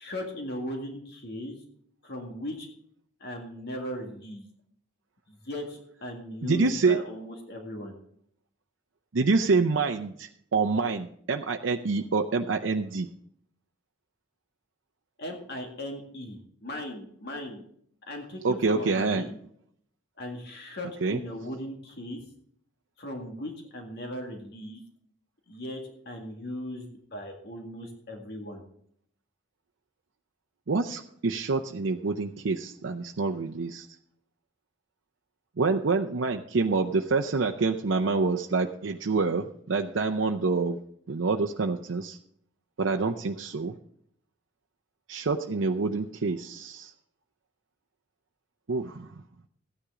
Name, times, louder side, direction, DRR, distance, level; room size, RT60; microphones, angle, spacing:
voice 1, 0.0-1.6 2.0-2.7 3.2-4.5 5.3-8.0 15.2-17.6 18.1-19.4 20.2-22.2 23.0-24.8 25.5-28.6, left 1 dB, 60° left, 2 dB, 1.9 m, -38 dB
voice 2, 6.4-7.0 9.1-13.1 18.4-19.3 21.0-21.2 30.7-33.9 35.6-40.8 41.1-42.2 42.8-43.7 45.1-46.9 48.7-49.1, right 4 dB, 80° right, 4 dB, 0.6 m, -27 dB
14.5 x 9.9 x 3.7 m, 0.65 s
head